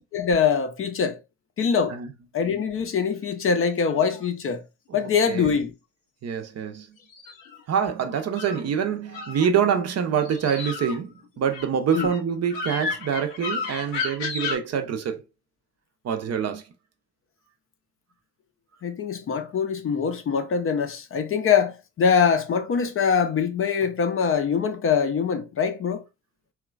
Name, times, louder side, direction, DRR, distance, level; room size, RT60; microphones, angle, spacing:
voice 1, 0.1-1.2 1.6-2.0 2.3-4.6 4.9-5.7 11.9-12.1 18.8-26.0, left 6 dB, 35° left, 0.5 m, -23 dB
sound 1, 3.3-4.3 7.0-8.6 9.1-9.8 10.1-14.6, left 4 dB, 85° left, 0.7 m, -33 dB
voice 2, 4.9-5.5 6.2-6.9 7.7-15.2 16.0-16.6, right 7 dB, 45° right, 0.6 m, -26 dB
3.0 x 2.2 x 2.3 m
hypercardioid pair, 40°, 38 cm